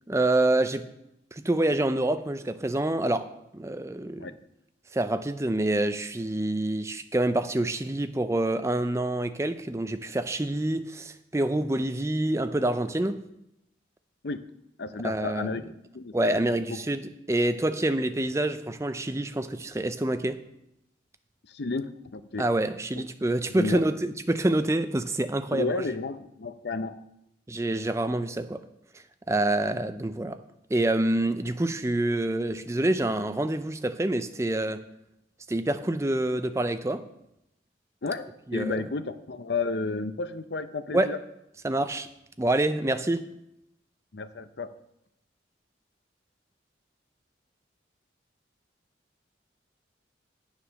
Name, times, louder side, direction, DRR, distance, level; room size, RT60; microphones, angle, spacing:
voice 1, 0.1-0.9 1.3-3.3 3.5-4.3 4.9-13.2 15.0-15.5 16.1-20.4 22.4-25.7 27.5-28.6 29.3-30.4 30.7-34.8 35.5-37.0 38.5-38.8 40.9-41.1 41.6-42.1 42.4-43.3, right 1 dB, 15° right, 10 dB, 0.4 m, -27 dB
voice 2, 14.8-15.6 15.9-16.8 21.5-22.5 22.9-23.0 23.5-23.8 25.5-27.0 38.0-41.2 44.1-44.7, left 3 dB, 60° left, 12 dB, 0.6 m, -32 dB
8.7 x 7.2 x 6.3 m, 0.84 s
head